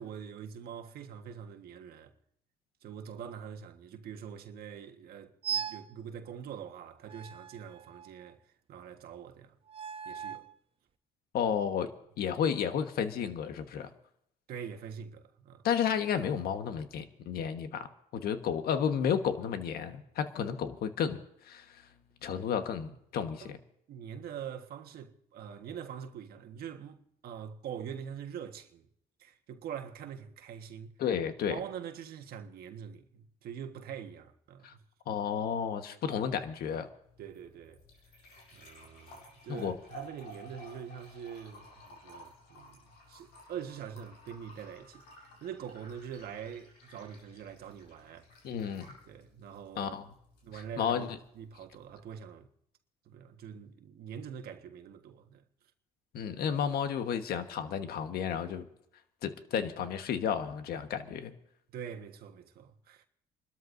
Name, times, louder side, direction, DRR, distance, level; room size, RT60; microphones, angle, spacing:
voice 1, 0.0-2.1 2.8-8.4 8.7-9.6 10.0-10.5 14.5-15.6 23.4-23.5 23.9-28.9 29.2-30.9 31.5-34.8 37.2-37.8 38.5-42.8 43.1-48.3 49.0-50.0 50.4-52.5 53.0-55.4 61.7-63.1, right 8 dB, 65° right, 1.4 m, -44 dB
sound 1, 5.4-5.9 7.1-8.3 9.7-10.5, right 8 dB, 35° right, 0.6 m, -39 dB
voice 2, 11.3-11.9 12.2-13.9 15.6-17.9 18.1-21.2 21.5-21.6 22.2-23.6 31.0-31.5 34.6-34.7 35.1-36.9 39.5-39.7 48.4-48.8 49.8-50.0 50.5-51.1 56.1-58.6 59.2-61.3, left 8 dB, 65° left, 1.4 m, -32 dB
sound 2, 37.0-52.0, equal, 85° left, 7.1 m, -54 dB
29.5 x 13.0 x 2.7 m
cardioid pair, 110°, 17 cm